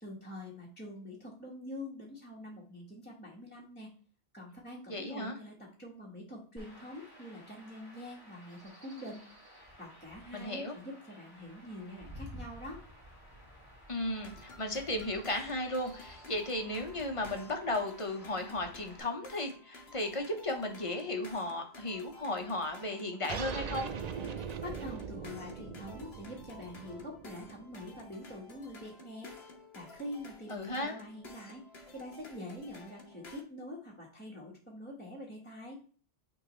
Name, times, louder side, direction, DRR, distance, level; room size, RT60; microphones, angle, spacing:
voice 1, 0.0-3.9 4.3-9.3 9.8-12.8 24.6-29.3 29.7-31.6 31.9-35.8, left 1 dB, 10° left, -5 dB, 1.3 m, -45 dB
voice 2, 4.9-5.4 10.3-10.7 13.9-23.9 30.5-30.9, left 1 dB, 35° left, 5 dB, 1.0 m, -35 dB
Chirp tweet / Wind / Stream, 6.6-19.0, equal, 20° right, 2.0 m, -53 dB
sound 1, 14.1-33.4, left 2 dB, 85° left, 1.4 m, -53 dB
sound 2, 23.3-28.3, right 7 dB, 50° right, 0.5 m, -41 dB
9.1 x 3.6 x 3.1 m, 0.43 s
omnidirectional pair, 1.0 m